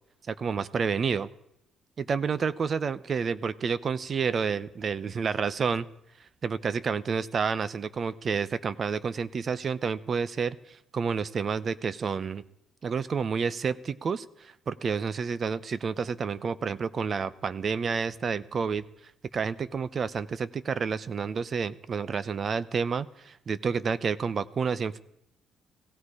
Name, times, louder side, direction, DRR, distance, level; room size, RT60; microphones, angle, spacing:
voice 1, 0.3-1.3 2.0-5.9 6.4-12.4 12.8-18.8 19.3-25.0, right 6 dB, 45° right, 16 dB, 0.7 m, -29 dB
17.5 x 16.0 x 4.9 m, 0.78 s
cardioid pair, 90°, 0 cm